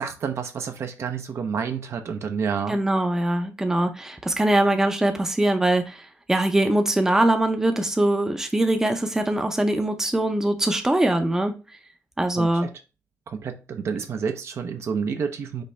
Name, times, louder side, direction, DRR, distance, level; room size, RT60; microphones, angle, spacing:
voice 1, 0.0-2.8 12.4-12.7 13.3-15.6, right 6 dB, 55° right, 0.6 m, -29 dB
voice 2, 2.7-6.0 6.3-11.5 12.2-12.7, right 1 dB, 10° right, 0.6 m, -22 dB
5.3 x 2.7 x 3.3 m
cardioid pair, 130°, 5 cm